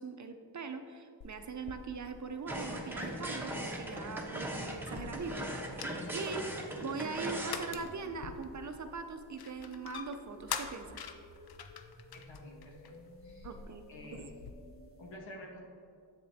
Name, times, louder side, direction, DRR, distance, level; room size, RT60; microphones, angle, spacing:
voice 1, 0.0-5.5 5.8-6.5 6.8-11.0 13.4-13.8 14.1-14.3, right 4 dB, 40° right, 7 dB, 0.6 m, -41 dB
sound 1, 1.2-14.5, left 7 dB, 55° left, 0.5 m, -47 dB
sound 2, 2.5-7.7, right 1 dB, 5° right, 0.9 m, -39 dB
sound 3, 5.2-15.2, left 1 dB, 30° left, 0.9 m, -56 dB
voice 2, 12.1-12.9 13.2-13.5 13.9-14.3 15.0-15.7, left 1 dB, 80° left, -1 dB, 1.4 m, -50 dB
7.5 x 7.5 x 2.8 m, 2.3 s
cardioid pair, 85°, 45 cm